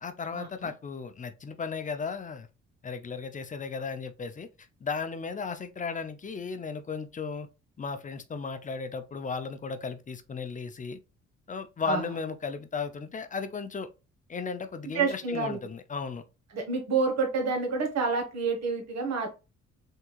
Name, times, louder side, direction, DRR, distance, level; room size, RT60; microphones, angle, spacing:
voice 1, 0.0-2.5 2.8-4.5 4.8-7.5 7.8-11.0 11.5-13.9 14.3-16.2, left 5 dB, 25° left, 0.5 m, -35 dB
voice 2, 14.8-15.6 16.5-19.3, right 4 dB, 60° right, 1.3 m, -28 dB
3.6 x 2.7 x 2.3 m
cardioid pair, 90°, 30 cm